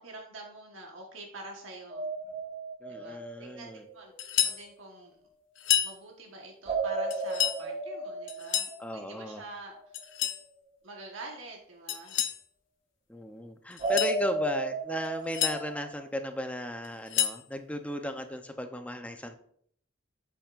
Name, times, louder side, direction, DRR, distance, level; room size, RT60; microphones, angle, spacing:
voice 1, 0.0-2.1 2.9-4.1 4.4-5.2 5.8-9.9 10.8-12.2, right 2 dB, 85° right, 0 dB, 1.3 m, -46 dB
sound 1, 1.9-4.0 6.7-9.5 13.8-16.0, right 2 dB, 30° right, 1.1 m, -34 dB
voice 2, 2.8-3.8 8.8-9.4 13.1-19.4, equal, 5° left, 6 dB, 0.6 m, -36 dB
sound 2, 4.2-4.6 5.6-6.0 7.1-7.6 8.3-8.8 9.9-10.4 11.9-12.4 13.7-14.2 15.0-15.6 16.8-17.4, left 10 dB, 65° left, 0.7 m, -29 dB
8.9 x 7.5 x 2.5 m, 0.63 s
head